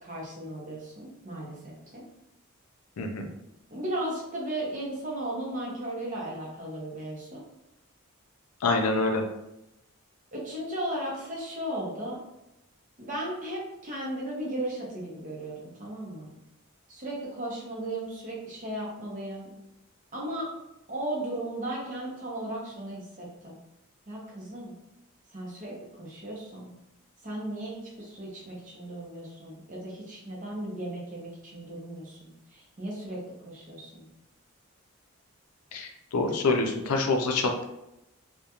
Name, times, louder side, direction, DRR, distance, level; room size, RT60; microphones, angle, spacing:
voice 1, 0.0-2.0 3.7-7.4 10.3-12.2 13.0-16.3 16.9-19.5 20.1-20.5 20.9-23.6 24.1-24.7 25.3-26.7 27.2-34.1, right 1 dB, 35° right, -3 dB, 0.7 m, -36 dB
voice 2, 8.6-9.2 35.7-37.6, left 3 dB, 90° left, 3 dB, 0.4 m, -26 dB
2.3 x 2.1 x 2.8 m, 0.90 s
head